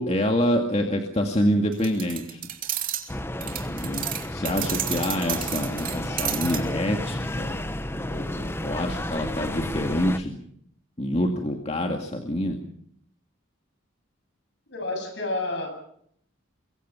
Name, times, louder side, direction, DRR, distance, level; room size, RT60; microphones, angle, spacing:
voice 1, 0.0-2.4 3.4-4.0 4.3-7.6 7.9-10.4 11.0-12.6, equal, 30° left, 3 dB, 2.1 m, -26 dB
sound 1, 1.7-3.1 3.4-6.6, right 11 dB, 45° right, 3.1 m, -31 dB
sound 2, 3.1-10.2, left 1 dB, 10° left, 1.0 m, -32 dB
voice 2, 14.7-15.7, left 2 dB, 60° left, 6 dB, 7.7 m, -29 dB
24.5 x 23.5 x 5.8 m, 0.67 s
head